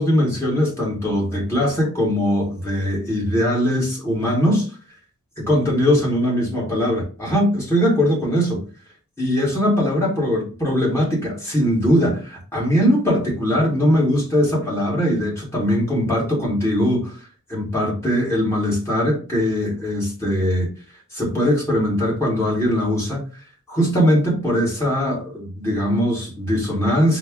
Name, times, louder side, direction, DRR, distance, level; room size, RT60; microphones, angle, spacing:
voice 1, 0.0-4.7 5.4-8.6 9.2-17.1 17.5-20.7 21.1-23.4 23.7-27.2, equal, 15° left, 1.4 m, -20 dB
5.1 x 2.0 x 3.6 m
head